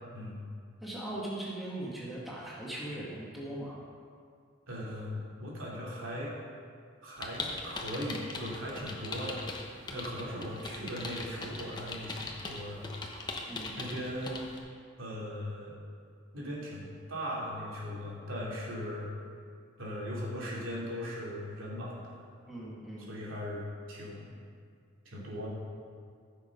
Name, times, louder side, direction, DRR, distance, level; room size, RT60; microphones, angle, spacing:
voice 1, 0.8-3.8 13.5-13.8 22.5-23.1, right 1 dB, ahead, -7 dB, 1.9 m, -39 dB
voice 2, 4.7-6.3 7.0-9.4 9.9-12.8 13.8-14.4 15.0-15.8 16.3-19.1 19.8-22.2 23.1-24.3 25.0-25.5, equal, 80° right, -5 dB, 2.9 m, -38 dB
sound 1, 7.2-14.6, left 3 dB, 20° left, 0.9 m, -40 dB
14.5 x 6.6 x 5.3 m, 2.1 s
head